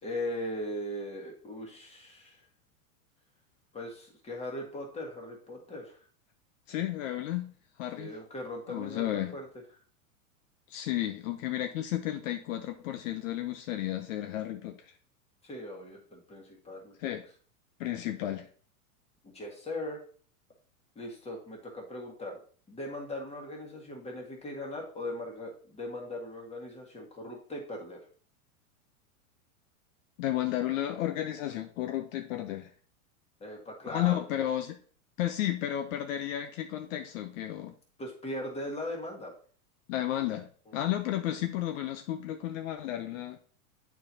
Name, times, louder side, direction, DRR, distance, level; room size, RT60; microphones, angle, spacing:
voice 1, 0.0-2.4 3.7-6.0 8.0-9.5 15.4-17.1 19.2-20.0 20.9-22.4 22.7-28.0 33.4-34.2 38.0-39.3 40.7-40.8, left 1 dB, 15° left, 1.7 m, -39 dB
voice 2, 6.7-7.5 7.8-8.1 8.7-9.4 10.7-14.8 17.0-17.2 17.8-18.5 30.2-32.7 33.9-34.8 35.2-37.7 39.9-43.4, left 13 dB, 60° left, 0.7 m, -32 dB
8.5 x 4.6 x 2.8 m
hypercardioid pair, 125°, 43 cm